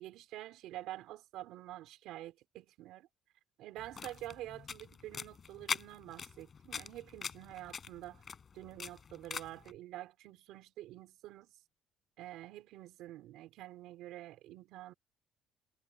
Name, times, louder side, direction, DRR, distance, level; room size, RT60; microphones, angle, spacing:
voice 1, 0.0-3.1 3.6-8.2 8.5-11.5 12.2-14.9, right 15 dB, 80° right, 3.9 m, -47 dB
sound 1, 3.8-9.7, left 6 dB, 30° left, 5.9 m, -43 dB
cardioid pair, 150°, 0 cm